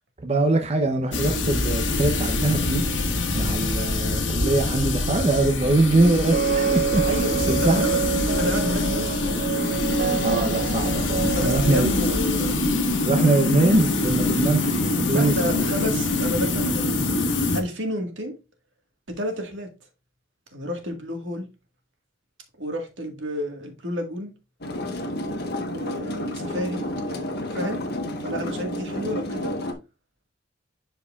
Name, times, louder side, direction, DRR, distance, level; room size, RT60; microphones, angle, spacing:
voice 1, 0.2-2.8 3.3-7.0 7.5-7.8 10.2-11.9 13.0-15.6, right 2 dB, 35° right, 0.8 m, -22 dB
sound 1, 1.1-17.6, left 2 dB, 80° left, 1.5 m, -24 dB
sound 2, 6.3-12.2, right 7 dB, 50° right, 0.3 m, -27 dB
voice 2, 7.1-8.0 8.4-9.4 11.3-12.6 13.2-13.5 15.1-16.9 17.5-18.4 19.1-19.7 20.5-21.5 22.6-24.3 25.7-27.8 28.2-29.5, equal, 80° right, 1.7 m, -30 dB
sound 3, 24.6-29.7, left 1 dB, 60° left, 1.2 m, -30 dB
11.0 x 4.6 x 2.4 m
head